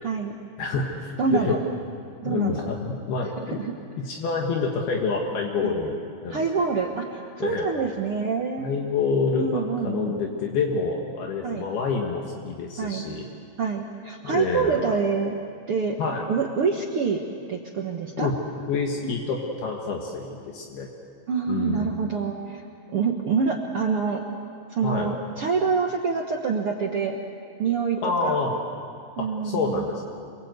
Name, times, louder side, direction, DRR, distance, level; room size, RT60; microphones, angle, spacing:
voice 1, 0.0-0.3 1.2-1.6 2.2-2.6 3.4-3.7 5.6-5.8 6.3-8.7 9.3-10.2 11.4-11.6 12.8-13.1 13.6-15.4 15.7-16.0 16.3-17.2 17.5-18.3 21.3-22.6 22.9-24.2 24.7-27.2 27.6-28.4 29.2-29.9, right 5 dB, 80° right, 1 dB, 1.2 m, -26 dB
voice 2, 0.6-1.6 2.3-3.6 4.0-6.4 7.4-7.7 8.6-13.2 14.2-14.9 16.0-16.3 18.2-18.4 18.7-20.9 21.5-21.9 24.8-25.1 28.0-28.6 29.2-30.0, left 4 dB, 70° left, 0 dB, 3.5 m, -27 dB
27.5 x 23.5 x 8.1 m, 2.4 s
omnidirectional pair, 4.7 m